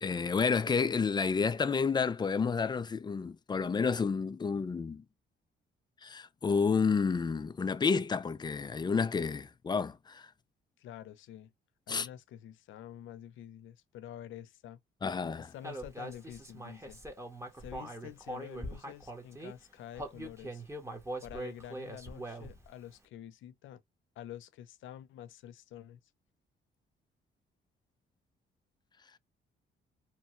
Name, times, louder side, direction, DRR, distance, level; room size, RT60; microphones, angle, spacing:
voice 1, 0.0-5.0 6.0-10.3 11.9-12.1 15.0-15.5, left 5 dB, 20° left, 0.4 m, -30 dB
voice 2, 10.8-11.5 11.9-14.8 15.4-17.0 17.5-20.6 21.2-23.8 24.2-26.0, left 11 dB, 75° left, 0.6 m, -48 dB
Human voice, 15.6-19.5 19.9-22.7, right 1 dB, 15° right, 1.0 m, -42 dB
3.0 x 2.2 x 2.9 m
cardioid pair, 90°, 20 cm